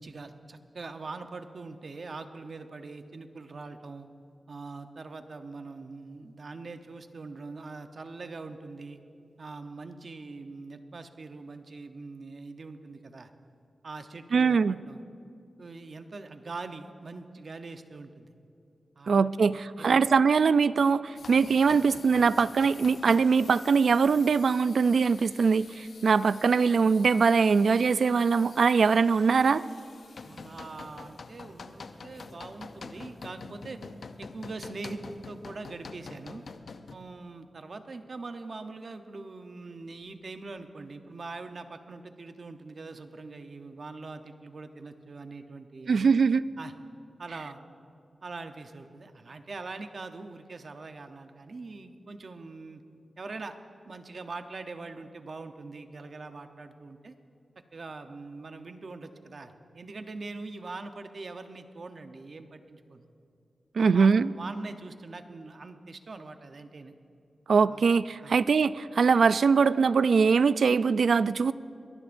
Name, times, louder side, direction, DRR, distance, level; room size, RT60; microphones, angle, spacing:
voice 1, 0.0-4.1 4.5-9.0 9.4-13.3 13.8-15.0 15.6-18.3 19.0-20.0 30.2-33.8 34.2-36.4 36.9-46.0 46.6-46.7 47.2-47.6 48.2-52.8 53.2-53.6 53.9-57.1 57.7-63.1 63.8-66.9 67.6-67.9 68.2-68.4, right 3 dB, 50° right, 7 dB, 0.8 m, -42 dB
voice 2, 14.3-14.8 19.1-29.6 45.9-46.5 63.8-64.3 67.5-71.5, right 5 dB, 70° right, 16 dB, 0.3 m, -22 dB
sound 1, 21.2-36.9, left 4 dB, 65° left, 0.6 m, -47 dB
23.0 x 18.5 x 2.6 m, 2.6 s
wide cardioid pair, 160°, 0 cm